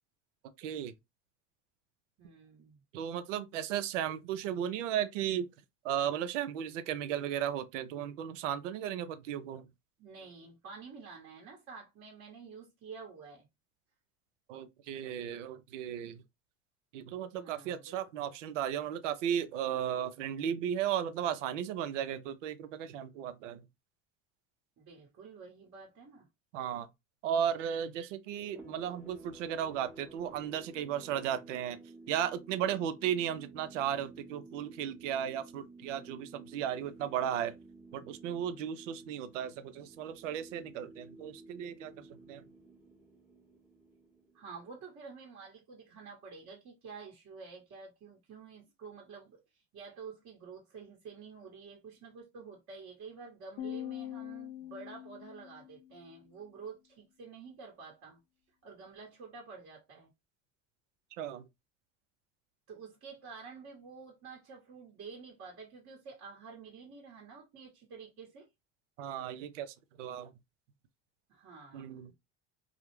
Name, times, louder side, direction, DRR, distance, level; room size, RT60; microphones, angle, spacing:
voice 1, 0.6-0.9 2.9-5.5 5.8-9.7 14.5-16.2 16.9-23.6 26.5-26.9 27.2-31.8 32.1-37.5 37.9-42.4 61.2-61.4 69.0-70.3 71.7-72.1, right 9 dB, 85° right, 0.5 m, -35 dB
voice 2, 2.2-2.8 10.0-13.5 17.4-18.0 24.8-26.3 44.3-58.2 58.6-60.1 62.7-68.5 71.3-72.1, right 5 dB, 40° right, 1.0 m, -49 dB
sound 1, 28.4-44.7, right 2 dB, 5° right, 0.7 m, -53 dB
sound 2, 53.6-56.0, left 12 dB, 70° left, 0.7 m, -43 dB
2.3 x 2.0 x 3.0 m
supercardioid pair, 95°, 36 cm